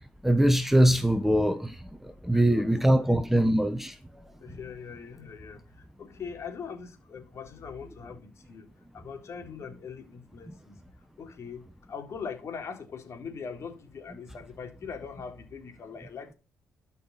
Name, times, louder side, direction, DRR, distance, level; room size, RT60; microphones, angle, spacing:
voice 1, 0.2-1.7 2.0-3.9, right 1 dB, 5° right, 1.2 m, -22 dB
voice 2, 2.3-3.1 4.4-10.8 11.2-16.3, left 6 dB, 50° left, 3.9 m, -41 dB
12.5 x 6.0 x 4.2 m
cardioid pair, 90°, 6 cm